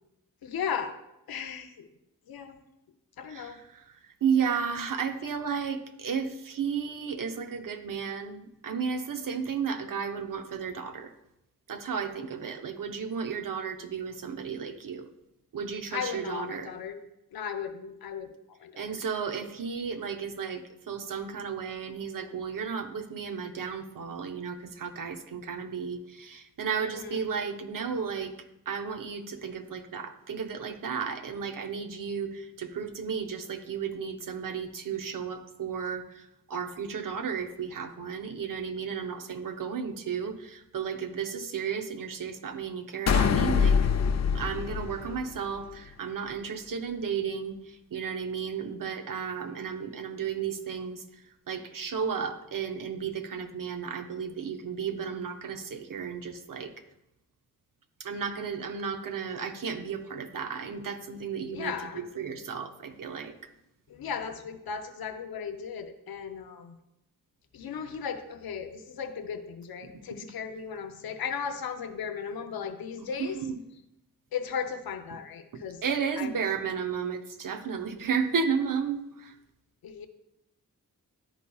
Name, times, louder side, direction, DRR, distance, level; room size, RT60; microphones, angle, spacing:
voice 1, 0.4-0.9 1.3-1.9 2.3-2.6 3.2-3.6 15.9-17.0 17.3-18.3 18.6-19.0 26.8-27.3 61.5-62.1 63.9-66.7 67.5-73.4 74.3-75.8 76.2-76.3 79.8-80.1, left 7 dB, 90° left, 7 dB, 0.6 m, -36 dB
voice 2, 3.3-11.1 11.7-15.1 15.5-16.7 18.8-28.3 28.7-43.8 44.3-56.7 58.0-63.3 69.8-70.0 73.2-73.6 75.8-79.3, right 6 dB, 65° right, 8 dB, 0.7 m, -33 dB
sound 1, 43.1-45.6, left 6 dB, 50° left, 0.5 m, -25 dB
11.0 x 4.1 x 2.3 m, 0.87 s
cardioid pair, 45°, 35 cm